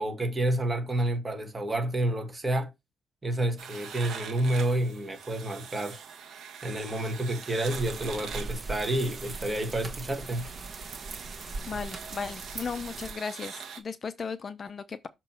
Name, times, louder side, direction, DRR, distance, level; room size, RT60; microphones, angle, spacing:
voice 1, 0.0-2.7 3.2-6.0 6.6-10.5, right 1 dB, 20° right, 1.8 m, -29 dB
sound 1, 3.6-13.8, right 7 dB, 65° right, 1.2 m, -44 dB
sound 2, 7.6-13.1, right 3 dB, 45° right, 1.4 m, -40 dB
voice 2, 11.7-15.1, left 5 dB, 40° left, 0.6 m, -36 dB
6.5 x 3.0 x 5.6 m
cardioid pair, 90°, 0 cm